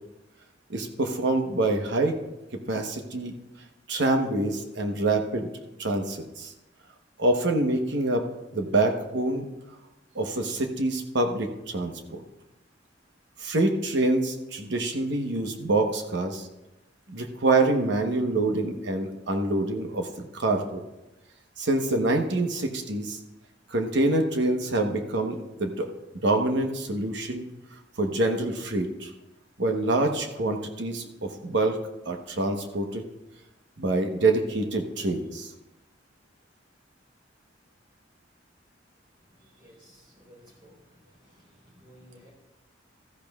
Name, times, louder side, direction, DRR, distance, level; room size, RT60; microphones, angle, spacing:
voice 1, 0.7-2.2 2.7-3.3 3.9-5.5 5.8-6.5 7.2-8.2 8.5-9.4 10.1-12.2 13.4-16.5 17.1-20.8 21.6-23.2 23.7-25.9 26.2-27.5 28.0-29.1 29.6-31.8 32.1-33.1 33.8-35.5, right 2 dB, 65° right, 4 dB, 1.1 m, -26 dB
voice 2, 39.6-40.7 41.8-42.3, equal, 25° right, -3 dB, 4.3 m, -53 dB
15.5 x 13.5 x 2.4 m, 0.99 s
head